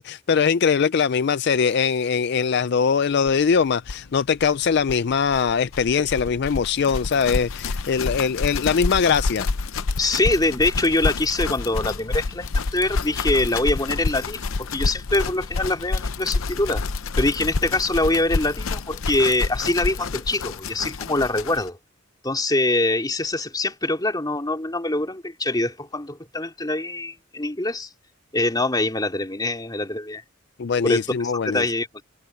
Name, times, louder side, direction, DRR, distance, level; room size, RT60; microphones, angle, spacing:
voice 1, 0.0-9.5 30.6-31.6, left 6 dB, 55° left, 0.4 m, -21 dB
sound 1, 3.3-3.4 3.6-3.7 3.8-21.7, left 3 dB, 85° left, 0.7 m, -28 dB
voice 2, 10.0-16.9 17.2-21.8 22.2-27.9 28.3-30.2 30.8-31.0 31.4-32.0, left 2 dB, 20° left, 3.3 m, -24 dB
head